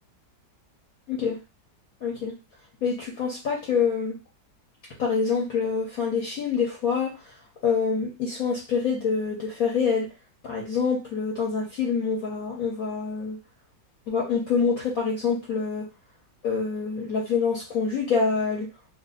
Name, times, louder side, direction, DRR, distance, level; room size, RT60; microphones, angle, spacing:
voice 1, 2.0-2.3 2.8-4.1 5.0-7.4 7.6-10.1 10.4-13.4 14.1-15.8 16.4-18.7, left 5 dB, 60° left, -2 dB, 1.1 m, -26 dB
2.7 x 2.6 x 3.9 m, 0.29 s
omnidirectional pair, 1.9 m